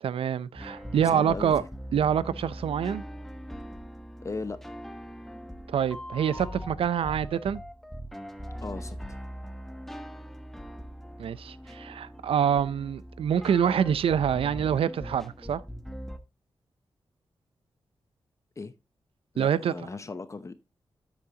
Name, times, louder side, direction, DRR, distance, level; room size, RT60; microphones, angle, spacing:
voice 1, 0.0-1.6 1.9-3.0 5.7-7.6 11.2-15.6 19.4-19.7, right 8 dB, 85° right, 0.6 m, -26 dB
sound 1, 0.5-16.2, equal, 5° left, 1.1 m, -41 dB
voice 2, 1.0-1.7 4.2-4.6 8.6-9.0 18.6-18.7 19.3-20.5, left 3 dB, 35° left, 0.7 m, -37 dB
9.7 x 8.6 x 2.9 m
wide cardioid pair, 100°, 9 cm